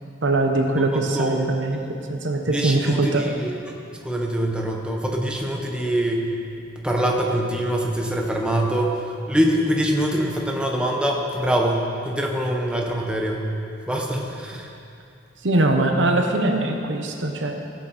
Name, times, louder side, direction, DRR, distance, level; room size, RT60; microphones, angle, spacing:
voice 1, 0.2-3.3 15.4-17.6, right 2 dB, 75° right, 3 dB, 1.1 m, -22 dB
voice 2, 2.5-3.5 4.0-6.3 6.8-8.9 9.3-13.4 13.9-14.7, right 1 dB, 5° right, 0 dB, 1.1 m, -24 dB
16.0 x 7.5 x 4.3 m, 2.6 s
head